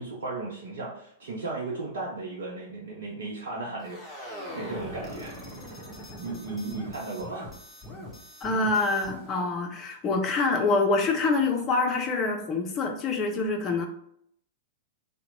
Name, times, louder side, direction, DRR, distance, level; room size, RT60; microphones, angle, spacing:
voice 1, 0.0-5.8 6.2-7.5, right 3 dB, 65° right, -3 dB, 0.6 m, -36 dB
sound 1, 3.8-9.3, left 1 dB, 10° left, 1.0 m, -41 dB
voice 2, 8.4-13.9, left 3 dB, 25° left, 3 dB, 0.6 m, -26 dB
2.9 x 2.1 x 3.9 m, 0.70 s
figure-of-eight pair, 100°, 0 cm